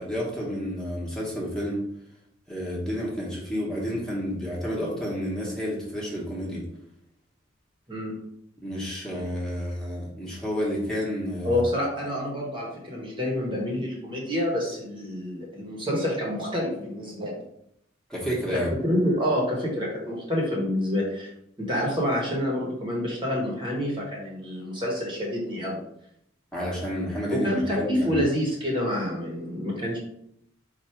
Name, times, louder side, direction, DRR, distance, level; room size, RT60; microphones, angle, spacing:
voice 1, 0.0-1.8 2.5-6.6 8.6-11.6 18.1-18.7 26.5-27.5 27.7-28.2, equal, 5° left, -6 dB, 1.1 m, -30 dB
voice 2, 7.9-8.2 11.4-17.4 18.5-21.3 21.6-25.8 27.4-30.0, left 1 dB, 25° right, -2 dB, 1.1 m, -27 dB
4.6 x 2.5 x 4.4 m, 0.74 s
head